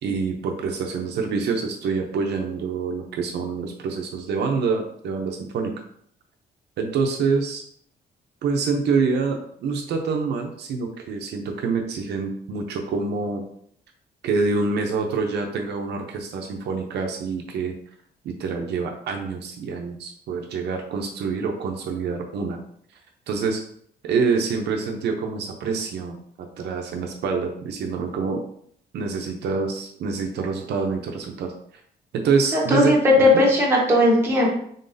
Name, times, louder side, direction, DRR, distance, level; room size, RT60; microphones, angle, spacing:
voice 1, 0.0-5.7 6.8-7.6 8.4-13.4 14.2-17.7 18.2-22.6 23.3-23.6 24.0-26.2 26.6-28.4 28.9-31.5 32.1-33.4, right 4 dB, 75° right, 3 dB, 0.6 m, -26 dB
voice 2, 32.7-34.5, left 1 dB, 15° right, -4 dB, 1.1 m, -17 dB
3.8 x 3.8 x 2.6 m, 0.63 s
cardioid pair, 165°, 17 cm